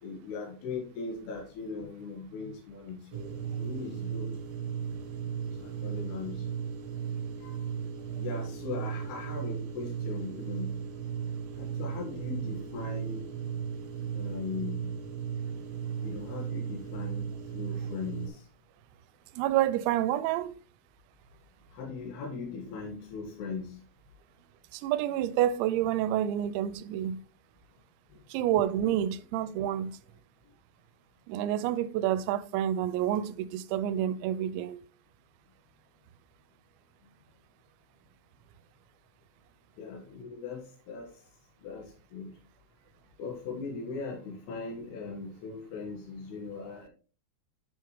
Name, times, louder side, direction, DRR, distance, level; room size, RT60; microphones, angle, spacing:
voice 1, 0.0-4.4 5.6-6.5 7.4-7.5 8.1-10.7 11.6-13.2 14.1-14.9 16.0-17.3 17.5-18.5 21.7-23.8 28.1-28.2 39.8-41.1 41.6-42.3 43.2-46.9, left 4 dB, 70° left, 3.3 m, -39 dB
sound 1, 3.1-18.3, right 7 dB, 65° right, 2.6 m, -36 dB
voice 2, 19.3-20.6 24.7-27.2 28.3-30.0 31.3-34.8, right 11 dB, 85° right, 2.9 m, -28 dB
8.8 x 5.7 x 3.1 m
omnidirectional pair, 5.2 m